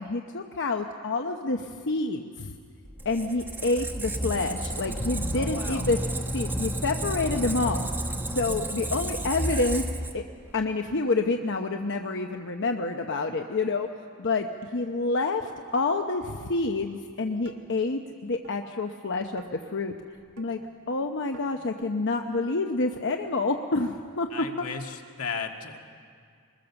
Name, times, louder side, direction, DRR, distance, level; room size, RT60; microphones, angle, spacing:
voice 1, 0.0-2.5 3.0-6.0 6.3-7.8 8.3-9.9 10.1-10.2 10.5-13.9 14.2-19.4 19.7-19.9 20.4-20.6 20.9-24.3, left 3 dB, 55° left, 4 dB, 0.9 m, -28 dB
Squeak, 2.9-10.6, right 1 dB, 10° right, 1.1 m, -31 dB
voice 2, 5.3-5.9 24.3-25.8, left 5 dB, 80° left, 3 dB, 1.9 m, -35 dB
sound 1, 17.4-17.7 18.4-18.6 19.4-19.6 20.4-20.5 21.3-21.5, right 3 dB, 65° right, 1.9 m, -48 dB
24.5 x 21.0 x 7.0 m, 2.2 s
head